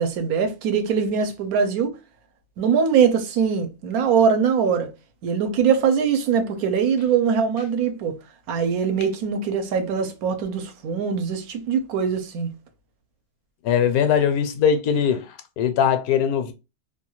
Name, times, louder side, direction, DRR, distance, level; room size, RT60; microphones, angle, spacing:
voice 1, 0.0-2.0 2.6-4.9 5.2-8.1 8.5-12.5, right 6 dB, 80° right, 1.1 m, -22 dB
voice 2, 13.6-15.3 15.6-16.5, left 8 dB, 75° left, 1.0 m, -20 dB
2.7 x 2.3 x 2.9 m
omnidirectional pair, 1.6 m